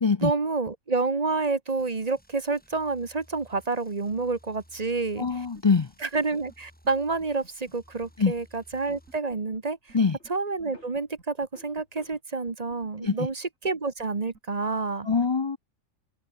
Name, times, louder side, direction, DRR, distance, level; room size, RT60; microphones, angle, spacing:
voice 1, 0.2-5.5 6.0-10.0 10.3-15.1, right 3 dB, 30° right, 1.2 m, -29 dB
sound 1, 1.8-9.2, equal, 5° left, 5.3 m, -58 dB
voice 2, 5.2-5.9 8.2-8.3 9.9-10.2 13.0-13.2 15.1-15.6, left 5 dB, 40° left, 0.4 m, -23 dB
sound 2, 5.2-5.8 6.1-6.2 6.5-6.6 6.8-6.9 7.2-7.7 8.0-8.1 8.4-8.5 8.7-9.6 9.9-10.0 10.2-10.3 10.6-10.7 10.9-11.5 11.8-11.9 12.1-12.2 12.5-13.3 13.6-13.7 14.0-14.1 14.3-14.4, right 4 dB, 85° right, 3.0 m, -53 dB
sound 3, 6.0-12.2, left 2 dB, 60° left, 4.6 m, -59 dB
omnidirectional pair, 1.3 m